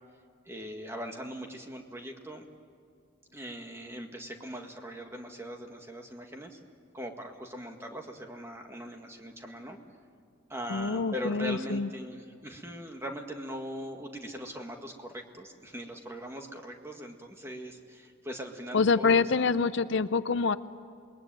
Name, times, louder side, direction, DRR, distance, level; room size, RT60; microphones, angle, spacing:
voice 1, 0.5-2.4 3.3-6.6 6.9-9.8 10.5-19.3, equal, 10° right, 3 dB, 1.8 m, -40 dB
voice 2, 10.7-11.9 18.7-20.6, left 4 dB, 60° left, 13 dB, 0.6 m, -26 dB
27.5 x 20.5 x 9.1 m, 2.3 s
head